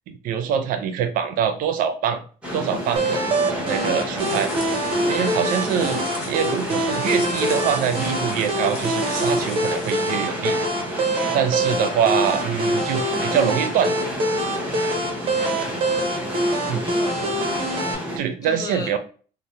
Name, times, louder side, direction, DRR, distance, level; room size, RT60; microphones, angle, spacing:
voice 1, 0.1-2.2 2.5-4.5 5.1-10.6 11.3-13.9 16.7-16.8 18.2-19.0, right 8 dB, 75° right, 8 dB, 0.5 m, -24 dB
sound 1, 2.4-18.2, equal, 5° right, 1.0 m, -30 dB
sound 2, 3.0-18.0, right 1 dB, 40° right, 0.7 m, -25 dB
sound 3, 4.2-10.1, left 2 dB, 45° left, 1.0 m, -38 dB
voice 2, 16.8-18.9, left 3 dB, 25° left, 2 dB, 0.6 m, -37 dB
2.7 x 2.1 x 3.1 m, 0.40 s
cardioid pair, 135°, 14 cm